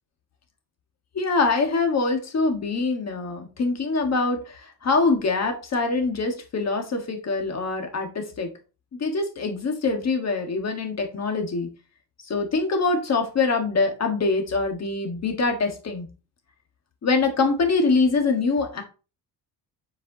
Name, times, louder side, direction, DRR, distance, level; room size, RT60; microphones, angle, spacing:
voice 1, 1.1-8.5 9.0-11.7 12.2-16.1 17.0-18.8, left 3 dB, 40° left, 5 dB, 1.5 m, -24 dB
7.5 x 4.7 x 2.8 m, 0.33 s
cardioid pair, 115°, 42 cm